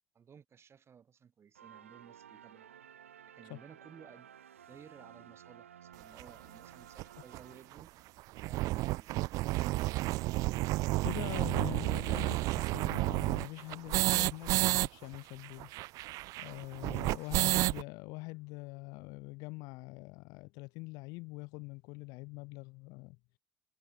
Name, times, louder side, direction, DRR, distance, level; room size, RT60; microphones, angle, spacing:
voice 1, 0.2-2.7 3.3-4.3 4.7-7.9 8.4-10.0 16.8-17.1, right 7 dB, 40° right, 6.8 m, -56 dB
sound 1, 1.6-8.1, right 9 dB, 85° right, 1.8 m, -55 dB
sound 2, 6.2-6.3 7.0-7.1 7.3-7.4 7.7-7.8 8.2-14.9 15.1-15.2 15.4-17.8, right 19 dB, 60° right, 0.5 m, -31 dB
voice 2, 11.0-15.7 16.4-23.2, left 26 dB, 65° left, 0.7 m, -44 dB
figure-of-eight pair, 60°, 7 cm